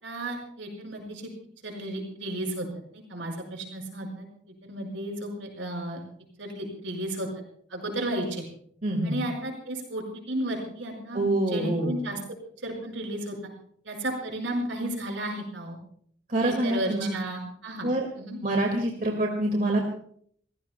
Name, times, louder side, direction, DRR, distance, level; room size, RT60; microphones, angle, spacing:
voice 1, 0.0-1.3 1.6-2.7 2.9-4.3 4.6-6.0 6.4-7.3 7.7-8.5 9.0-11.2 11.5-12.2 12.6-13.4 13.9-15.8 16.4-17.9 18.2-18.4, right 1 dB, 80° right, 1 dB, 5.4 m, -33 dB
voice 2, 8.8-9.2 11.1-12.0 16.3-17.1 17.8-18.1 18.4-19.9, right 1 dB, 45° right, 1 dB, 2.1 m, -26 dB
29.0 x 15.5 x 2.3 m, 0.63 s
head